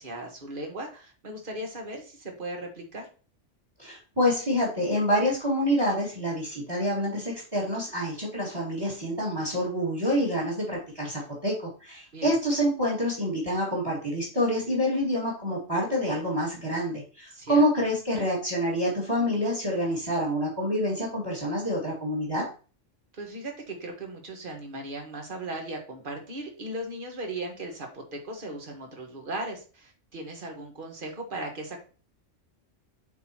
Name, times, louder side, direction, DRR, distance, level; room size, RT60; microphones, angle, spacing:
voice 1, 0.0-3.1 12.1-12.4 17.3-17.6 23.1-31.8, right 1 dB, 45° right, 2 dB, 1.5 m, -37 dB
voice 2, 3.8-22.5, equal, 20° right, -3 dB, 2.1 m, -27 dB
8.1 x 4.2 x 2.9 m, 0.37 s
omnidirectional pair, 1.3 m